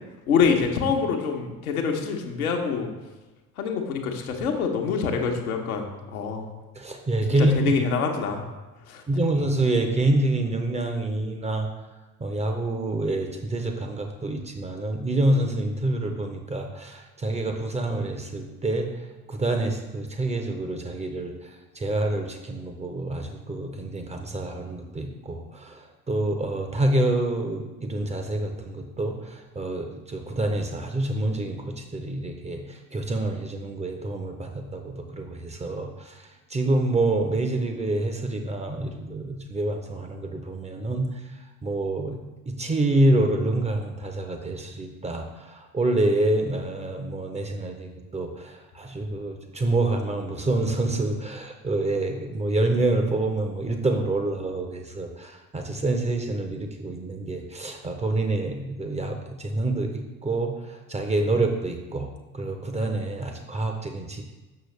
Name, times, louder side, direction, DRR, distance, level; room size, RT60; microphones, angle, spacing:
voice 1, 0.3-2.9 3.6-6.5 7.6-8.4 8.9-9.0, left 6 dB, 70° left, 2 dB, 1.0 m, -25 dB
voice 2, 6.8-7.5 9.1-11.7 12.2-18.9 19.3-41.1 41.6-42.2 42.5-64.2, right 2 dB, 15° right, 5 dB, 0.7 m, -27 dB
6.6 x 6.2 x 3.2 m, 1.1 s
figure-of-eight pair, 65°, 45 cm